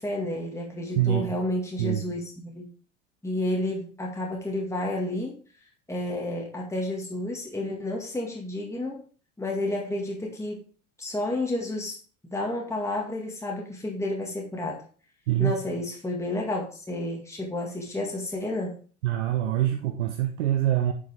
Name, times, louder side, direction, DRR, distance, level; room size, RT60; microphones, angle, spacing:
voice 1, 0.0-2.7 3.2-5.4 5.9-9.0 9.4-10.6 11.0-12.0 12.3-14.8 15.4-18.8, left 1 dB, 5° left, -1 dB, 1.9 m, -31 dB
voice 2, 19.0-20.9, right 12 dB, 70° right, 4 dB, 1.0 m, -24 dB
10.0 x 5.3 x 3.5 m, 0.40 s
figure-of-eight pair, 70°, 38 cm